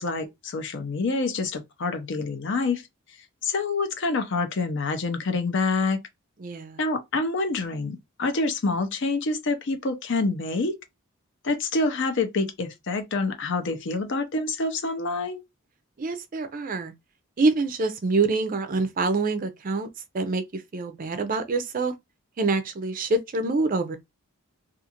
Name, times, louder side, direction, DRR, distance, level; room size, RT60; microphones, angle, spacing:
voice 1, 0.0-2.8 3.4-6.0 6.8-10.8 11.4-15.4, left 3 dB, 55° left, 0.6 m, -27 dB
voice 2, 6.4-6.8 16.0-16.9 17.4-19.9 20.1-21.9 22.4-24.0, right 3 dB, 40° right, 0.4 m, -26 dB
2.4 x 2.4 x 2.8 m
head